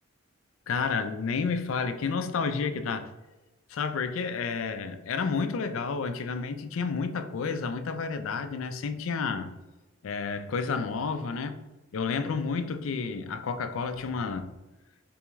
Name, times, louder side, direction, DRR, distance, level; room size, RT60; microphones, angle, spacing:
voice 1, 0.7-3.1 3.7-9.5 10.0-11.6 11.9-14.5, left 5 dB, 75° left, 0.4 m, -30 dB
3.4 x 3.1 x 3.4 m
head